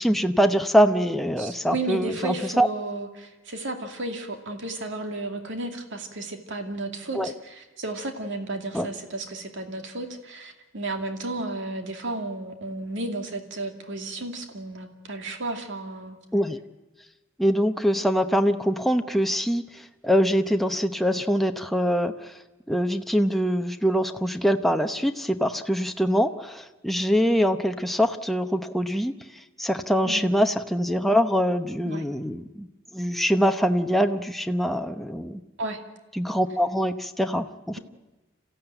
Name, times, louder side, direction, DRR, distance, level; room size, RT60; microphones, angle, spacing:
voice 1, 0.0-2.7 7.1-7.3 8.7-8.9 16.3-16.6 17.4-19.7 20.0-22.1 22.7-29.1 29.6-32.7 32.9-35.4 36.2-37.8, equal, ahead, 6 dB, 0.9 m, -23 dB
voice 2, 1.4-16.2 30.1-30.4 31.8-32.0 35.6-35.8, right 2 dB, 60° right, 4 dB, 2.5 m, -33 dB
27.0 x 15.5 x 9.1 m, 1.1 s
head